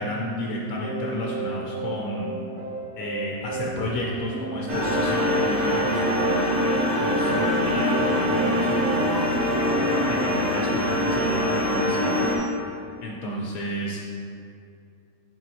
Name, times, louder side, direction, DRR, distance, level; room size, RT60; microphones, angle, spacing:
voice 1, 0.0-2.3 3.0-12.2 13.0-14.0, left 1 dB, 75° left, -2 dB, 1.1 m, -32 dB
sound 1, 0.7-9.3, right 3 dB, 70° right, 1.2 m, -32 dB
sound 2, 4.7-12.4, left 1 dB, 50° right, 1.4 m, -23 dB
7.4 x 5.4 x 2.7 m, 2.5 s
omnidirectional pair, 1.5 m